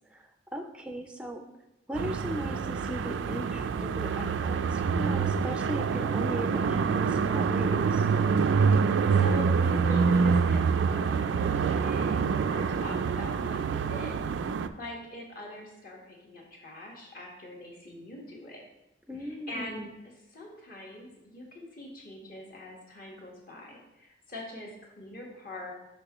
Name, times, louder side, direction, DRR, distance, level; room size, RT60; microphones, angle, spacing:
voice 1, 0.1-1.4 1.9-8.1 19.1-20.0, equal, 5° right, 4 dB, 0.4 m, -38 dB
sound 1, 1.9-14.7, right 5 dB, 80° right, 0.3 m, -26 dB
voice 2, 8.7-14.1 14.8-18.6 19.2-19.8 20.3-25.7, left 1 dB, 50° left, -1 dB, 1.3 m, -43 dB
6.7 x 5.1 x 3.0 m, 0.92 s
head